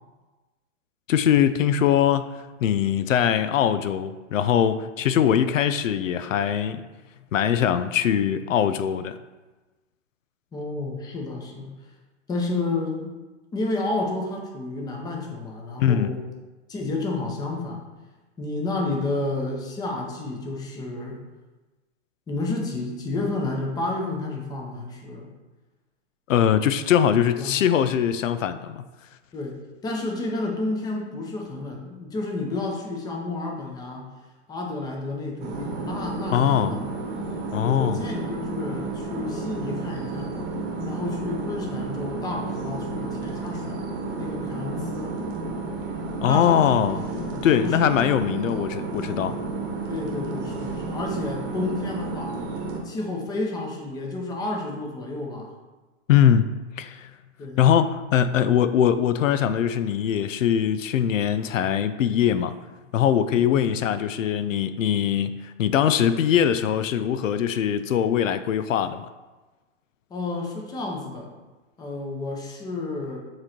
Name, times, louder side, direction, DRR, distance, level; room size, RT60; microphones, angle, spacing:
voice 1, 1.1-6.8 7.3-9.2 15.8-16.2 26.3-28.9 36.3-36.7 37.5-38.0 46.2-47.0 47.4-49.4 56.1-56.5 56.8-57.1 57.6-62.6 62.9-69.1, left 9 dB, 90° left, 12 dB, 0.5 m, -22 dB
voice 2, 10.5-11.7 12.3-13.1 13.5-16.2 16.7-17.8 18.4-21.2 22.3-25.3 27.4-27.6 29.3-29.5 29.8-34.1 34.5-36.9 37.6-40.3 40.8-43.8 44.1-45.2 46.2-46.8 47.1-48.0 49.9-52.4 52.8-55.5 57.4-57.7 63.4-63.8 70.1-71.3 71.8-73.2, left 2 dB, 10° left, 1 dB, 0.7 m, -31 dB
sound 1, 35.4-52.8, right 3 dB, 30° right, 1.1 m, -32 dB
7.4 x 3.1 x 4.3 m, 1.2 s
hypercardioid pair, 140°, 38 cm